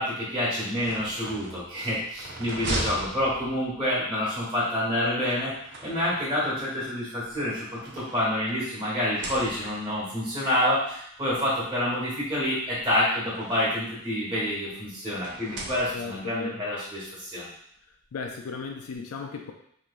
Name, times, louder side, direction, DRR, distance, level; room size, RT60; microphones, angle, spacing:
voice 1, 0.0-5.5 5.8-17.5, left 1 dB, 25° right, -8 dB, 1.5 m, -28 dB
sound 1, 0.7-3.9 5.2-6.4 7.2-8.6 9.0-9.9 10.9-11.0 11.3-11.4 12.6-13.9 15.1-16.3, right 2 dB, 55° right, 0.6 m, -38 dB
voice 2, 15.9-16.7 18.1-19.5, left 5 dB, 85° left, 3 dB, 0.4 m, -36 dB
3.2 x 3.0 x 2.5 m, 0.69 s
head